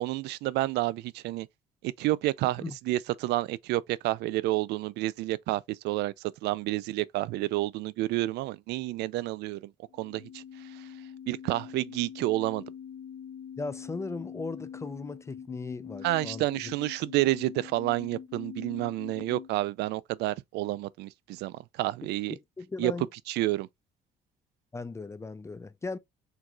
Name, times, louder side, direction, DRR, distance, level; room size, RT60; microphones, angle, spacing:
voice 1, 0.0-1.5 1.8-6.1 6.4-9.7 10.0-10.4 11.3-12.6 16.0-22.3 22.8-22.9 23.3-23.7, right 17 dB, 80° right, 0.4 m, -29 dB
sound 1, 9.9-19.5, left 8 dB, 80° left, 1.2 m, -44 dB
voice 2, 13.6-16.7 22.3-23.1 24.7-26.0, left 3 dB, 15° left, 0.4 m, -38 dB
4.5 x 3.9 x 2.3 m
cardioid pair, 110°, 17 cm